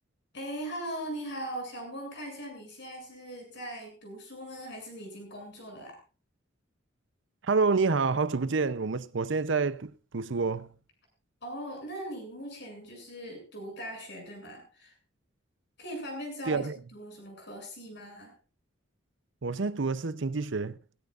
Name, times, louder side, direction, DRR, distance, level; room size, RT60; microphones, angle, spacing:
voice 1, 0.3-6.0 11.4-15.0 15.8-18.3, right 1 dB, 55° left, 7.6 m, -40 dB
voice 2, 7.4-10.7 16.5-16.8 19.4-20.8, right 4 dB, 65° right, 0.7 m, -28 dB
18.0 x 16.5 x 2.5 m
head